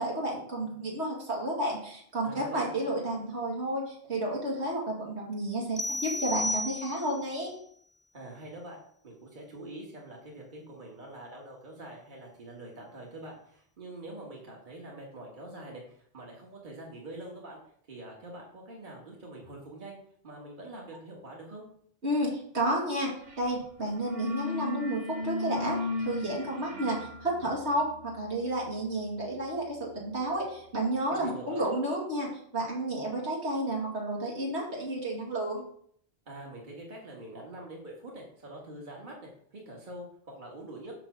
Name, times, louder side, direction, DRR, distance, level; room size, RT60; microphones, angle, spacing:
voice 1, 0.0-7.5 22.0-35.6, right 1 dB, 85° right, -2 dB, 2.6 m, -31 dB
voice 2, 2.2-2.7 8.1-15.8 16.1-17.6 17.9-20.0 20.2-21.6 31.1-31.7 36.3-39.3 39.7-40.9, right 1 dB, 45° right, -2 dB, 1.8 m, -45 dB
sound 1, 5.8-7.3, left 2 dB, 5° right, 0.3 m, -33 dB
sound 2, 23.3-23.5 23.8-30.4, left 3 dB, 65° right, 1.5 m, -38 dB
6.0 x 5.7 x 6.3 m, 0.63 s
omnidirectional pair, 1.1 m